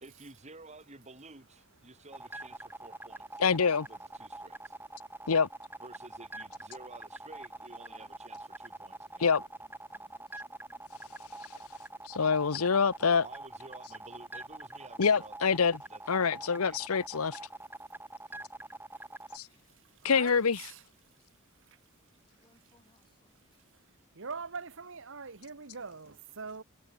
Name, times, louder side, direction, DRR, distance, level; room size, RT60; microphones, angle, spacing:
voice 1, 0.0-3.4 3.8-4.8 5.8-9.3 13.2-16.8 18.3-18.5, right 3 dB, 30° right, 2.6 m, -53 dB
sound 1, 2.1-19.4, right 2 dB, 10° right, 5.2 m, -44 dB
voice 2, 3.4-3.9 5.3-5.5 9.2-9.4 12.1-13.2 15.0-15.8 16.1-17.4 19.3-19.5 20.0-20.6, left 5 dB, 75° left, 0.8 m, -26 dB
voice 3, 6.3-6.7 7.2-8.2 9.6-10.9 22.3-23.6, left 2 dB, 20° left, 6.3 m, -69 dB
voice 4, 20.0-20.8 21.7-21.8 24.1-26.6, right 5 dB, 60° right, 1.4 m, -42 dB
head